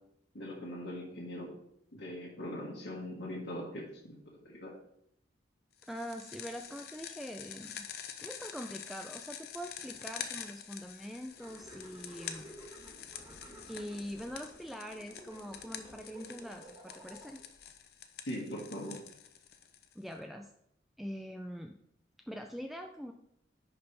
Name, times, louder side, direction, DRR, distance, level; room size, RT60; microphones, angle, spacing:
voice 1, 0.3-1.5 1.9-4.7 18.2-19.0, equal, 90° left, -6 dB, 1.8 m, -41 dB
sound 1, 5.8-20.1, left 8 dB, 60° left, 0.6 m, -47 dB
voice 2, 5.9-7.9 8.2-12.5 13.3-17.4 20.0-20.5 21.0-21.8 22.3-23.1, equal, ahead, 4 dB, 0.3 m, -43 dB
sound 2, 11.3-17.6, right 1 dB, 25° right, 2.2 m, -53 dB
10.5 x 4.3 x 3.3 m, 0.73 s
head